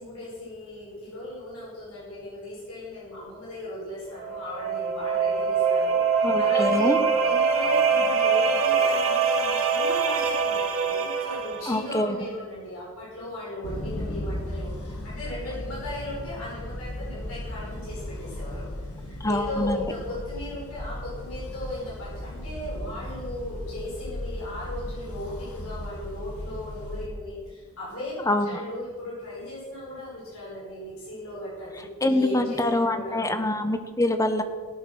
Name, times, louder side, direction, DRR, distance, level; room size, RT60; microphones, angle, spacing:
voice 1, 0.0-6.9 7.2-33.2, left 1 dB, 70° left, -6 dB, 5.4 m, -37 dB
sound 1, 4.2-11.9, right 5 dB, 70° right, 1.8 m, -24 dB
voice 2, 6.2-7.0 11.7-12.2 19.2-19.9 28.3-28.5 32.0-34.4, left 1 dB, 15° left, 7 dB, 1.1 m, -25 dB
sound 2, 13.6-27.1, left 1 dB, 90° left, 2.5 m, -36 dB
18.0 x 8.0 x 6.3 m, 1.5 s
head